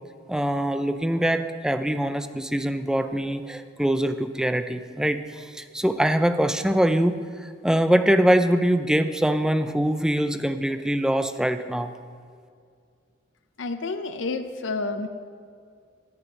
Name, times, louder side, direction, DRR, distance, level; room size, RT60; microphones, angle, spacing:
voice 1, 0.3-11.9, right 1 dB, 5° right, 10 dB, 0.4 m, -23 dB
voice 2, 13.6-15.1, left 3 dB, 75° left, 7 dB, 0.6 m, -29 dB
11.0 x 9.7 x 5.2 m, 2.2 s
head